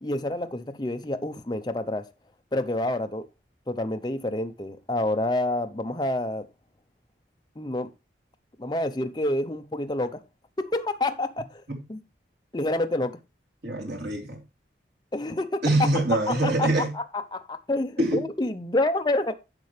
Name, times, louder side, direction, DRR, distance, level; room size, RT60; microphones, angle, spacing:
voice 1, 0.0-2.0 2.5-3.2 3.7-6.5 7.6-7.9 8.6-10.1 10.6-11.6 11.9-12.0 12.5-13.2 15.1-15.9 16.3-16.7 17.3-19.3, left 1 dB, 25° left, 0.7 m, -28 dB
voice 2, 13.6-14.4 15.6-16.9 18.0-18.2, right 1 dB, 75° right, 3.6 m, -24 dB
10.5 x 6.8 x 3.2 m
head